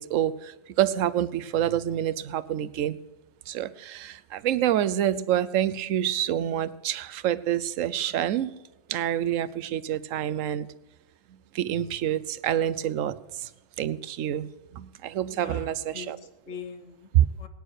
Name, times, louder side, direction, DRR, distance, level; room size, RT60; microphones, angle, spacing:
voice 1, 0.0-3.0 3.5-8.6 8.9-10.7 11.5-13.5 13.8-16.2 17.1-17.3, right 11 dB, 80° right, 17 dB, 1.0 m, -27 dB
voice 2, 15.3-17.5, left 6 dB, 75° left, 9 dB, 1.5 m, -43 dB
18.5 x 9.4 x 6.4 m, 1.1 s
omnidirectional pair, 1.3 m